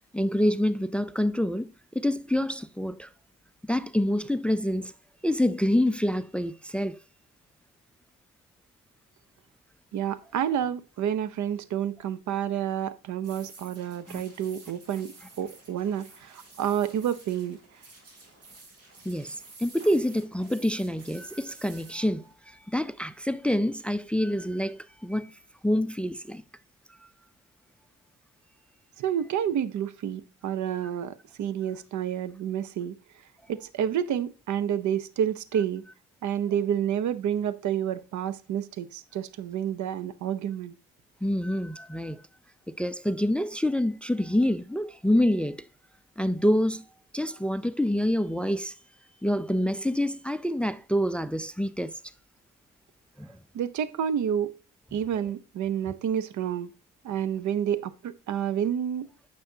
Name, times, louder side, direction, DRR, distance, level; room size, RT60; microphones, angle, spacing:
voice 1, 0.1-1.7 1.9-3.1 3.7-4.9 5.2-7.0 14.1-14.2 19.1-25.3 25.6-26.4 41.2-42.2 42.8-45.6 46.2-46.8 47.1-48.7 49.2-51.9 53.2-53.3, left 1 dB, 5° left, 0.4 m, -27 dB
voice 2, 9.9-17.6 29.0-33.0 33.5-35.9 36.2-40.7 53.5-54.6 54.9-56.7 57.0-59.1, right 9 dB, 70° right, 0.8 m, -29 dB
sound 1, 13.2-22.3, right 3 dB, 55° right, 3.3 m, -51 dB
9.4 x 6.6 x 2.7 m
cardioid pair, 90°, 30 cm